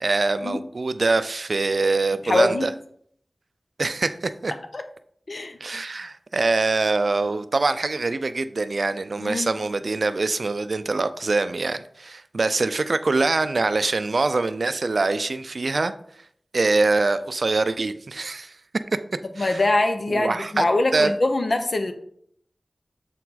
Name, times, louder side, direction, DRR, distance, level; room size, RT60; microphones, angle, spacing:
voice 1, 0.0-2.7 3.8-4.5 5.6-15.9 16.5-18.6 19.4-19.6 20.1-20.6 20.9-21.1, right 3 dB, 70° right, 12 dB, 0.4 m, -24 dB
voice 2, 2.2-2.7 4.7-4.8 5.3-5.6 9.2-9.6 19.4-21.9, left 2 dB, 60° left, 7 dB, 0.8 m, -23 dB
7.1 x 4.5 x 4.1 m, 0.66 s
wide cardioid pair, 80°, 0 cm